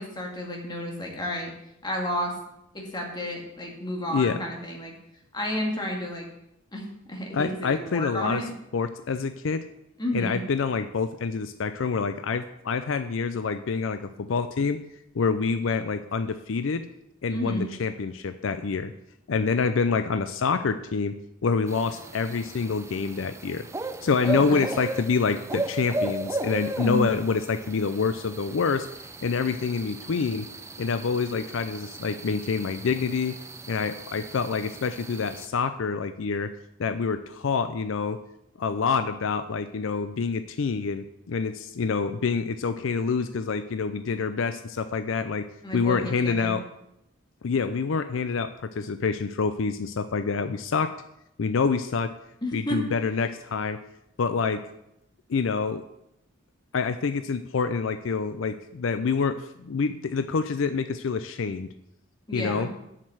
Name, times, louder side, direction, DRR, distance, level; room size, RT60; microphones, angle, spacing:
voice 1, 0.0-1.5 1.8-2.3 2.7-4.9 5.3-6.3 6.7-8.5 10.0-10.4 17.3-17.7 24.2-24.6 26.8-27.1 45.6-46.6 52.4-52.8 62.3-62.7, equal, 20° left, 0 dB, 2.0 m, -31 dB
voice 2, 4.1-4.4 7.3-8.4 8.7-9.6 10.1-14.8 15.1-16.8 17.2-18.9 19.3-21.2 21.4-23.7 24.0-28.9 29.2-30.5 30.8-33.4 33.7-36.5 36.8-38.2 38.6-45.5 45.7-46.6 47.4-50.9 51.4-52.1 52.5-53.8 54.2-54.6 55.3-55.8 56.7-61.7 62.3-62.7, left 5 dB, 70° left, 11 dB, 0.5 m, -27 dB
sound 1, 21.7-35.5, right 2 dB, 15° right, 0.5 m, -36 dB
7.4 x 6.6 x 7.8 m, 0.83 s
head